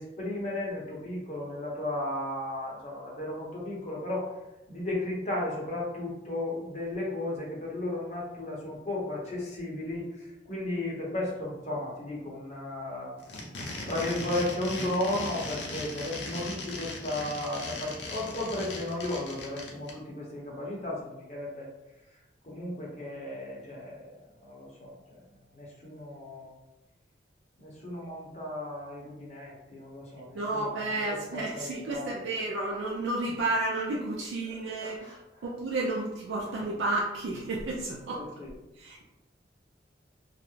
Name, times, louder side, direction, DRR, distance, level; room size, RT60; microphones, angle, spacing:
voice 1, 0.0-4.3 4.7-13.1 13.9-21.7 22.4-25.2 25.5-26.5 27.6-32.2 34.8-35.4 38.1-38.5, left 1 dB, 40° left, -4 dB, 0.7 m, -35 dB
sound 1, 13.2-19.9, left 2 dB, 70° left, 0.5 m, -38 dB
voice 2, 30.3-35.1 35.4-38.3 38.8-39.0, right 2 dB, 80° right, -3 dB, 0.4 m, -31 dB
2.3 x 2.0 x 3.0 m, 0.95 s
head